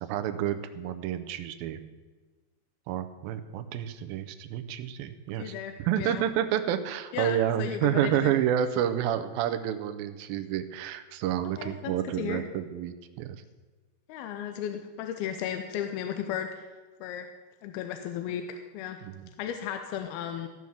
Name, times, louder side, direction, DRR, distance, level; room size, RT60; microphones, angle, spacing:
voice 1, 0.0-1.8 2.9-13.4 19.0-19.3, right 10 dB, 80° right, 10 dB, 2.2 m, -29 dB
voice 2, 5.4-6.2 7.1-8.3 11.6-11.9 12.2-12.4 14.1-16.7 17.0-17.3 17.6-19.0 19.4-20.5, left 9 dB, 80° left, 6 dB, 2.5 m, -34 dB
15.5 x 6.2 x 7.1 m, 1.3 s
omnidirectional pair, 4.8 m